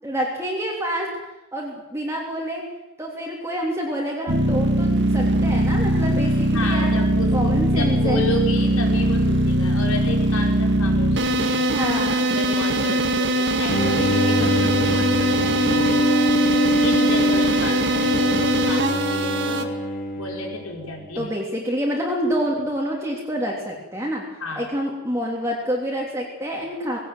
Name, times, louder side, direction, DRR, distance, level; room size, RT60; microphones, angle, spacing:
voice 1, 0.0-1.1 1.5-2.6 3.0-7.0 7.3-8.2 11.7-12.3 21.2-24.2 24.6-27.0, equal, 10° right, -2 dB, 3.0 m, -27 dB
sound 1, 4.3-19.6, right 1 dB, 50° right, 1.9 m, -21 dB
voice 2, 6.5-11.7 12.3-16.0 16.8-19.8 20.2-21.3 24.4-24.7, left 2 dB, 75° left, 1 dB, 5.0 m, -32 dB
Bowed string instrument, 13.7-20.9, equal, 40° left, 2.5 m, -23 dB
19.5 x 17.5 x 9.2 m, 0.98 s
head